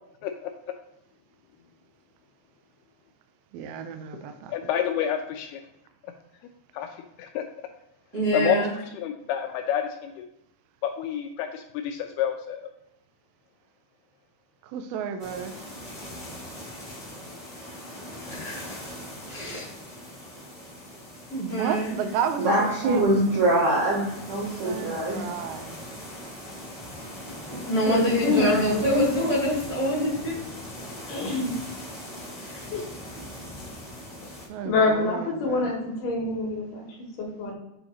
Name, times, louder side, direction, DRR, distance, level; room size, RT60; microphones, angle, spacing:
voice 1, 3.5-4.5 14.6-15.5 21.4-23.2 24.6-25.8 27.5-28.6 34.5-35.7, right 7 dB, 85° right, 7 dB, 2.2 m, -33 dB
voice 2, 4.2-5.6 6.7-7.4 8.3-8.6 8.9-10.3 10.8-12.7, left 9 dB, 85° left, 5 dB, 2.2 m, -29 dB
voice 3, 8.1-8.7 18.3-18.7 19.3-19.7 21.3-22.0 27.5-30.3 32.4-32.8, equal, 40° right, -8 dB, 1.0 m, -26 dB
sound 1, 15.2-34.5, left 1 dB, 30° left, 0.6 m, -40 dB
voice 4, 22.4-25.2, right 1 dB, 70° right, -7 dB, 1.7 m, -23 dB
voice 5, 27.9-28.8 31.1-31.5 32.7-32.8 34.7-36.9 37.2-37.5, left 3 dB, 65° left, -2 dB, 2.2 m, -25 dB
7.7 x 2.9 x 4.2 m, 0.87 s
omnidirectional pair, 5.0 m